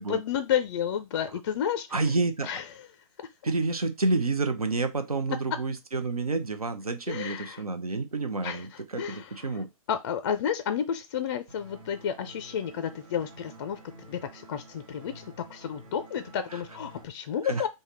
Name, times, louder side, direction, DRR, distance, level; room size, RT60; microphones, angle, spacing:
voice 1, 0.0-2.1 2.4-2.7 7.1-7.6 8.4-9.6 9.9-13.8 14.1-17.7, left 8 dB, 35° left, 10 dB, 0.4 m, -31 dB
voice 2, 1.9-2.5 3.4-9.7 17.4-17.7, right 3 dB, 85° right, 8 dB, 0.5 m, -29 dB
sound 1, 11.5-17.0, right 2 dB, 35° right, 1.1 m, -50 dB
3.4 x 2.1 x 4.2 m, 0.23 s
figure-of-eight pair, 120°, 18 cm